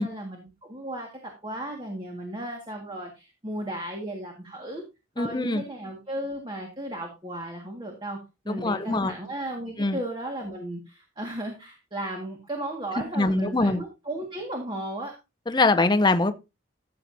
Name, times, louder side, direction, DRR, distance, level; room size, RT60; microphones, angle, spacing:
voice 1, 0.0-4.8 5.2-15.2, right 1 dB, 25° right, 1.8 m, -35 dB
voice 2, 5.2-5.6 8.5-9.1 9.8-10.0 13.2-13.8 15.5-16.3, left 2 dB, 20° left, 0.6 m, -23 dB
13.5 x 7.7 x 2.7 m
head